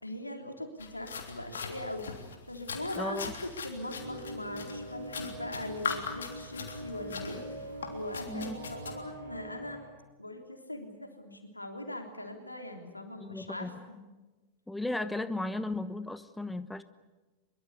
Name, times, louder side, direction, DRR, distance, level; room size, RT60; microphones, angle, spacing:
voice 1, 0.0-2.1 2.5-7.5 7.9-9.8 10.2-14.0, left 1 dB, 85° left, 5 dB, 3.5 m, -41 dB
sound 1, 0.8-8.9, left 5 dB, 70° left, 3.3 m, -41 dB
voice 2, 3.0-3.3 8.3-8.6 13.3-13.7 14.7-16.8, left 2 dB, 5° left, 13 dB, 1.1 m, -35 dB
sound 2, 3.9-9.9, right 1 dB, 65° right, 6.9 m, -43 dB
24.5 x 23.5 x 8.3 m, 1.2 s
figure-of-eight pair, 90°, 0 cm